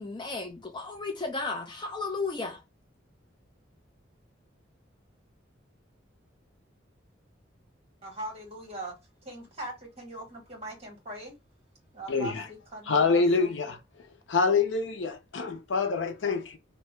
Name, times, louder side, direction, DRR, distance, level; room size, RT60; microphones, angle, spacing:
voice 1, 0.0-2.6, left 3 dB, 25° left, 0.4 m, -34 dB
voice 2, 8.0-8.9 9.2-11.3 11.9-13.7, right 1 dB, 35° right, 1.5 m, -41 dB
voice 3, 12.1-12.5 12.9-13.8 14.3-16.6, left 4 dB, 80° left, 0.6 m, -26 dB
2.7 x 2.1 x 3.2 m
head